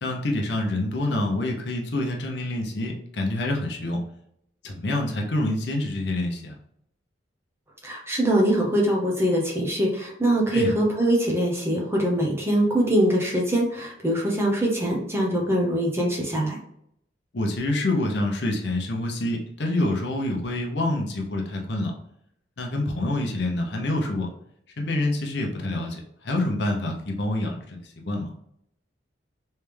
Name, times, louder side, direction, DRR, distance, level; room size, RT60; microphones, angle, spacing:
voice 1, 0.0-4.0 4.6-6.5 10.5-10.7 17.3-21.9 22.6-24.3 24.8-28.3, left 1 dB, 65° left, 1 dB, 0.7 m, -27 dB
voice 2, 7.8-16.6, right 1 dB, 15° right, -2 dB, 0.7 m, -23 dB
3.4 x 3.2 x 3.2 m, 0.74 s
head